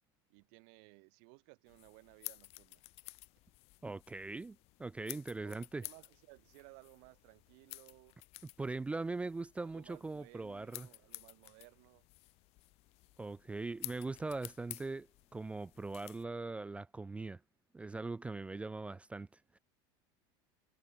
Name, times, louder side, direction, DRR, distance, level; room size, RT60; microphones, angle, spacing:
voice 1, 0.3-2.8 5.4-8.2 9.6-12.0, right 40 dB or more, 65° right, 3.2 m, -59 dB
sound 1, 1.7-16.2, left 22 dB, 55° left, 0.5 m, -52 dB
voice 2, 3.8-5.8 8.6-10.9 13.2-17.4 17.7-19.3, right 3 dB, 10° right, 0.3 m, -41 dB
sound 2, 5.6-10.6, right 14 dB, 45° right, 5.0 m, -77 dB
supercardioid pair, 120°, 13 cm